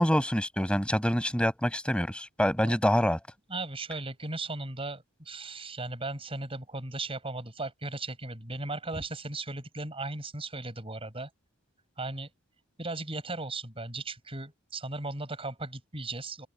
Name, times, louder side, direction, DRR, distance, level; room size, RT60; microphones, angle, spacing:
voice 1, 0.0-3.2, equal, 5° left, 6.3 m, -26 dB
voice 2, 3.5-11.3 12.0-12.3 12.8-16.5, right 2 dB, 25° right, 7.2 m, -37 dB
open air
head